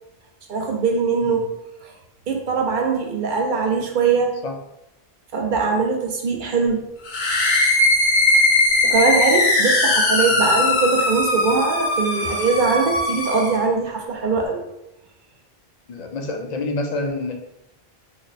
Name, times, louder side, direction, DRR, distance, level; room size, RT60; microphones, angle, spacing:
voice 1, 0.5-1.4 1.8-1.9 2.3-4.3 5.3-6.8 8.8-14.6, right 4 dB, 60° right, 1 dB, 0.7 m, -21 dB
sound 1, 7.0-13.6, left 2 dB, 75° left, 1.1 m, -19 dB
voice 2, 15.9-17.3, left 2 dB, 55° left, 3 dB, 0.5 m, -28 dB
3.3 x 2.1 x 3.9 m, 0.87 s
omnidirectional pair, 1.1 m